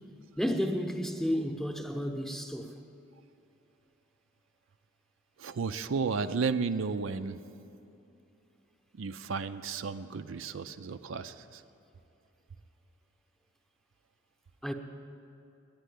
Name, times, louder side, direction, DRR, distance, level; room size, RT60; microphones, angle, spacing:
voice 1, 0.4-2.7 14.6-14.7, equal, ahead, 0.8 m, -31 dB
voice 2, 5.4-7.4 9.0-11.6, right 5 dB, 75° right, 0.5 m, -33 dB
10.5 x 9.1 x 10.0 m
head